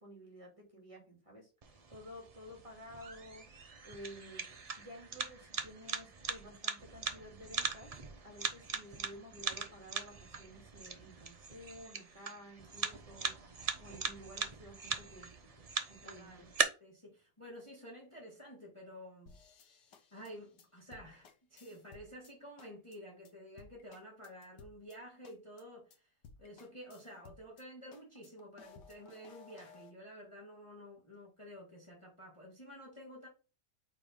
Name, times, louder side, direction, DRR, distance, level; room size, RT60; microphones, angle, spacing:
voice 1, 0.0-8.0 8.2-13.3 13.8-16.5, equal, 20° right, 2.5 m, -53 dB
sound 1, 1.6-16.6, right 5 dB, 45° right, 0.4 m, -40 dB
voice 2, 16.0-16.5 16.8-19.4 20.1-26.1 26.4-33.3, equal, 20° left, 1.8 m, -51 dB
sound 2, 19.3-22.3 22.6-23.0 23.2-23.3 23.6-25.0 25.2-25.6 25.9-26.0 26.2-27.6 27.9-29.9, left 5 dB, 80° left, 1.7 m, -58 dB
5.1 x 4.6 x 5.1 m
omnidirectional pair, 1.8 m